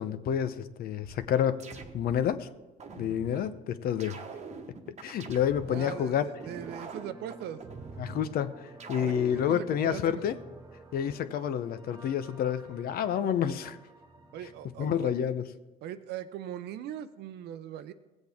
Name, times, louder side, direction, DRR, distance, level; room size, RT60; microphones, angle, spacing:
voice 1, 0.0-2.5 3.0-4.2 5.0-6.3 8.0-10.4 10.9-13.8 14.8-15.5, left 9 dB, 65° left, 12 dB, 0.7 m, -29 dB
sound 1, 1.0-2.3 2.8-3.5 4.0-5.9 6.4-8.3 8.8-9.5, right 4 dB, 40° right, 1.1 m, -44 dB
sound 2, 5.6-15.2, right 2 dB, 20° right, 1.4 m, -53 dB
voice 2, 5.7-7.6 9.0-9.1 9.5-10.2 14.3-15.1 15.8-17.9, right 10 dB, 75° right, 12 dB, 0.7 m, -40 dB
17.5 x 8.0 x 3.5 m, 1.1 s
cardioid pair, 110°, 17 cm